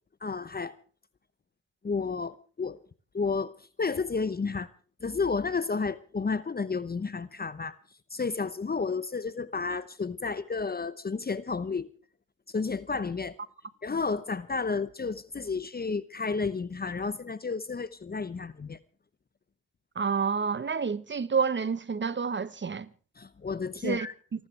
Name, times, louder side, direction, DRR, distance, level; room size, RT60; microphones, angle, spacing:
voice 1, 0.2-0.7 1.8-2.8 3.1-4.7 5.0-7.8 8.1-11.9 12.5-13.4 13.8-18.8 23.2-24.1, left 4 dB, 30° left, 0.9 m, -31 dB
voice 2, 20.0-22.9 23.8-24.1, right 5 dB, 35° right, 1.1 m, -29 dB
28.5 x 13.0 x 3.3 m
supercardioid pair, 50°, 33 cm